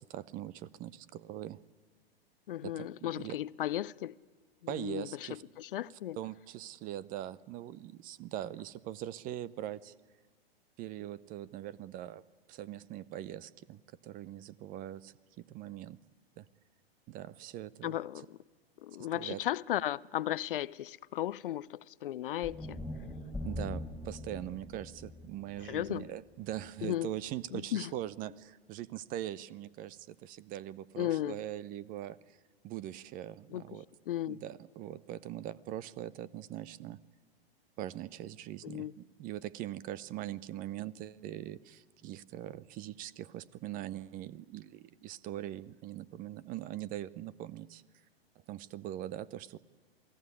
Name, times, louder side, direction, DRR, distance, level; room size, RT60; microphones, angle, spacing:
voice 1, 0.0-1.6 2.6-3.4 4.7-5.4 6.2-9.9 10.8-12.2 12.5-16.0 16.4-16.5 17.1-18.0 19.1-19.4 23.4-32.4 32.6-33.8 34.3-37.0 37.8-47.8 48.5-49.6, right 13 dB, 25° right, 0.7 m, -42 dB
voice 2, 2.5-4.1 4.8-5.3 5.6-6.2 17.8-18.4 18.8-22.8 25.6-26.1 26.8-27.1 27.5-27.9 31.0-31.4 33.5-33.6 34.1-34.4 38.6-38.9, left 13 dB, 60° left, 0.7 m, -35 dB
sound 1, 22.4-26.7, left 1 dB, 5° left, 3.6 m, -42 dB
27.5 x 17.5 x 9.7 m
figure-of-eight pair, 105°, 31 cm